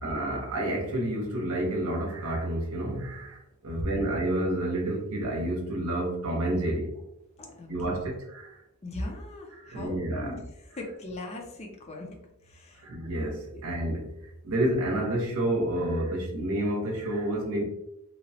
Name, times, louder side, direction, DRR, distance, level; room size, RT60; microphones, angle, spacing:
voice 1, 0.0-6.9 7.7-8.6 9.6-10.3 12.8-14.1 14.4-17.6, right 1 dB, 75° right, 0.7 m, -29 dB
voice 2, 7.4-8.1 8.8-12.2 12.4-12.9 13.5-13.6, left 2 dB, 30° left, 0.4 m, -40 dB
2.9 x 2.1 x 2.7 m
head